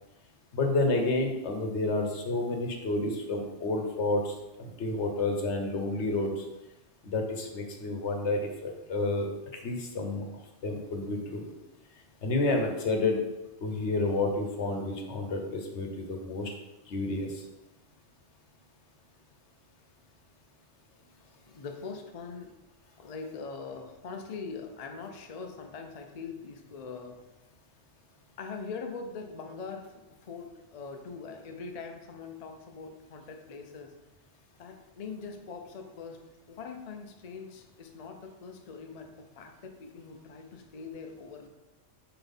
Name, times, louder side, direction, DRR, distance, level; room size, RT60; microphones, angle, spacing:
voice 1, 0.5-4.3 4.6-6.4 7.0-9.3 9.5-10.2 10.6-11.5 12.2-13.2 13.6-16.5 16.9-17.4, left 2 dB, 70° left, 3 dB, 1.2 m, -30 dB
voice 2, 21.4-22.5 23.0-27.2 28.4-29.9 30.2-33.9 34.6-41.5, left 5 dB, 45° left, 4 dB, 0.5 m, -42 dB
4.4 x 4.0 x 5.3 m, 1.0 s
omnidirectional pair, 1.2 m